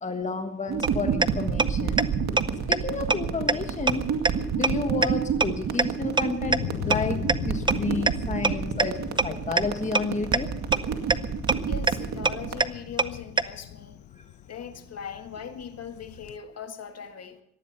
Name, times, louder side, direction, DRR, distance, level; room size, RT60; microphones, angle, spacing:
voice 1, 0.0-2.1 2.7-4.1 4.5-10.5 14.2-14.3, left 4 dB, 25° left, 1.4 m, -31 dB
sound 1, 0.7-12.6, right 6 dB, 65° right, 2.2 m, -30 dB
sound 2, 0.8-0.9 1.2-1.3 1.6-1.7 2.0-2.1 2.4-2.5 2.7-2.8 3.1-3.2 3.5-3.6 3.9-4.0 4.3-4.4 4.6-4.7 5.0-5.1 5.4-5.5 5.8-5.9 6.2-6.3 6.5-6.6 6.9-7.0 7.3-7.4 7.7-7.8 8.1-8.2 8.4-8.5 8.8-8.9 9.2-9.3 9.6-9.7 9.9-10.0 10.3-10.4 10.7-10.8 11.1-11.2 11.5-11.6 11.9-12.0 12.3-12.4 12.6-12.7 13.0-13.1 13.4-13.5, right 3 dB, 15° right, 0.7 m, -20 dB
Thunder, 5.8-16.4, left 12 dB, 80° left, 1.0 m, -39 dB
voice 2, 11.7-14.0 14.5-17.4, left 7 dB, 55° left, 1.8 m, -40 dB
18.5 x 14.0 x 5.6 m
cardioid pair, 90°, 30 cm